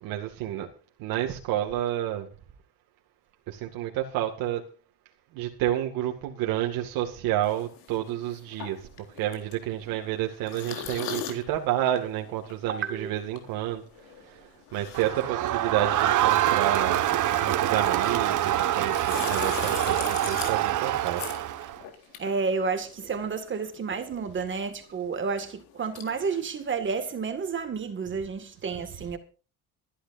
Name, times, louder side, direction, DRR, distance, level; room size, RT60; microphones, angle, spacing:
voice 1, 0.0-0.7 1.0-2.3 3.5-4.7 5.3-17.0 17.4-21.2, right 12 dB, 75° right, 2.1 m, -30 dB
sound 1, 7.4-23.2 23.5-26.4, left 8 dB, 80° left, 3.8 m, -41 dB
voice 2, 12.7-13.1 22.2-29.2, right 5 dB, 35° right, 2.1 m, -30 dB
Crowd, 14.9-21.8, right 12 dB, 55° right, 1.5 m, -25 dB
25.0 x 11.5 x 2.7 m
cardioid pair, 125°, 35 cm